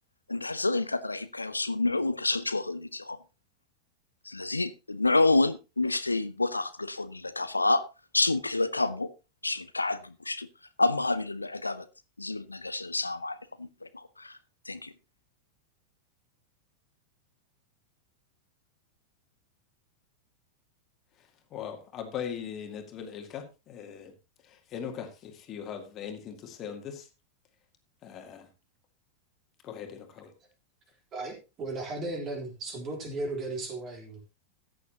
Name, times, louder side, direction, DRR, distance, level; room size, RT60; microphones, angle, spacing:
voice 1, 0.3-3.2 4.2-7.8 8.1-9.1 9.4-10.5 10.8-11.9 12.2-14.4 14.7-14.9, left 2 dB, 80° left, 0.6 m, -28 dB
voice 2, 21.5-24.1 24.4-27.1 28.0-28.5 29.6-30.3, left 8 dB, 30° left, 2.1 m, -40 dB
voice 3, 31.1-34.4, right 2 dB, 30° right, 3.6 m, -36 dB
14.5 x 9.4 x 2.9 m
figure-of-eight pair, 90°, 0 cm